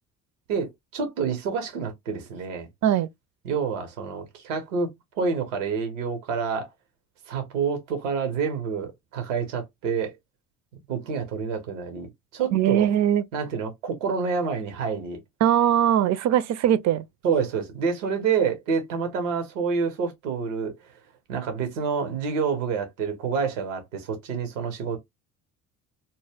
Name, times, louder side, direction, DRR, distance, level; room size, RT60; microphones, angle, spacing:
voice 1, 0.5-2.7 3.4-4.9 5.2-6.7 7.3-10.2 10.9-12.9 13.3-15.2 17.2-20.7 21.3-25.0, right 5 dB, 90° right, 0.8 m, -28 dB
voice 2, 12.5-13.2 15.4-17.0, right 10 dB, 50° right, 0.5 m, -21 dB
2.1 x 2.1 x 3.3 m
hypercardioid pair, 60°, 36 cm